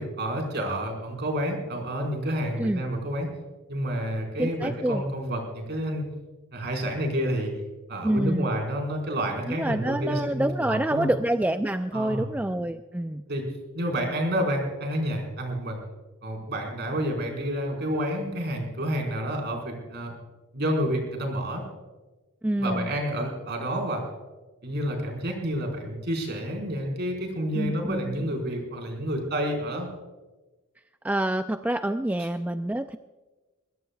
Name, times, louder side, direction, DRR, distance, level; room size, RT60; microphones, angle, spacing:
voice 1, 0.0-3.3 3.7-6.1 6.5-7.6 7.9-11.1 11.9-12.3 13.3-13.5 13.7-15.8 16.2-20.1 20.5-21.6 22.6-24.0 24.6-29.9 32.2-32.3, equal, 50° right, 2 dB, 4.7 m, -29 dB
voice 2, 4.4-5.0 8.0-8.5 9.5-13.2 22.4-22.9 27.5-28.3 31.0-33.0, right 1 dB, 5° right, 8 dB, 0.3 m, -27 dB
21.5 x 20.0 x 2.3 m, 1.2 s
head